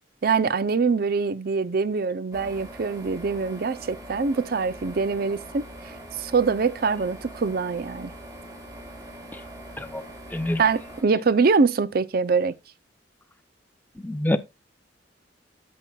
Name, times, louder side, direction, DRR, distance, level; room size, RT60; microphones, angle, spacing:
voice 1, 0.2-8.1 10.6-12.5, right 4 dB, 55° right, 0.5 m, -24 dB
sound 1, 2.3-11.0, right 1 dB, 20° right, 2.5 m, -42 dB
voice 2, 14.0-14.4, left 1 dB, 10° left, 0.5 m, -25 dB
12.5 x 5.4 x 2.3 m
head